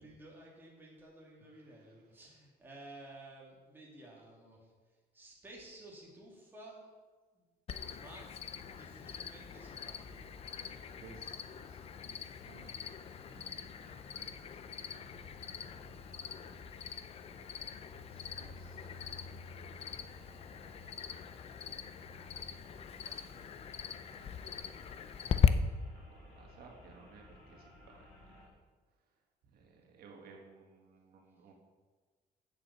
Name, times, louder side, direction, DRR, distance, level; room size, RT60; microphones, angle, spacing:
voice 1, 0.0-4.7 5.1-6.9 7.3-7.4 7.8-10.2 23.0-23.2, right 1 dB, 10° right, -4 dB, 2.7 m, -54 dB
Cricket, 7.7-25.5, left 8 dB, 40° left, 0.5 m, -39 dB
sound 1, 8.5-28.5, left 2 dB, 70° left, 3.4 m, -55 dB
voice 2, 11.0-12.2 12.5-12.8 13.3-15.0 18.1-20.4 20.7-21.3 24.1-24.8 25.9-27.9 29.5-31.5, right 4 dB, 70° right, 1 dB, 1.7 m, -59 dB
8.7 x 7.5 x 7.6 m, 1.4 s
cardioid pair, 165°, 16 cm